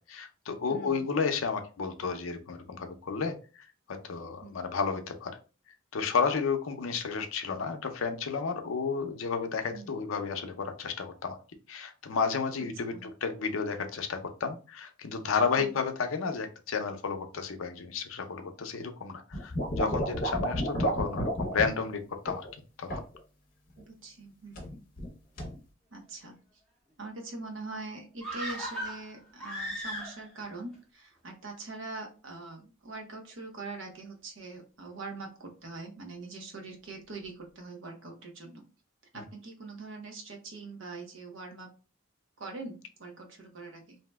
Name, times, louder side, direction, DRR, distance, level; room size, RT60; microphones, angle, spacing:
voice 1, 0.1-3.3 3.9-5.3 5.9-11.4 11.7-22.5 22.8-23.0 39.1-39.2, left 5 dB, 80° left, 6 dB, 0.5 m, -32 dB
voice 2, 0.7-1.0 4.4-4.6 9.7-10.0 12.9-13.1 15.6-15.8 19.8-20.1 23.8-24.9 25.9-26.4 27.0-38.6 39.1-41.7 42.4-44.0, right 3 dB, 70° right, 2 dB, 0.8 m, -43 dB
sound 1, 19.3-21.7 22.3-22.5 22.9-23.2 24.5-25.1 25.4-25.6, right 1 dB, 45° left, 0.7 m, -31 dB
sound 2, 28.2-30.4 30.7-30.8, equal, 5° left, 0.7 m, -37 dB
2.7 x 2.1 x 3.3 m, 0.34 s
head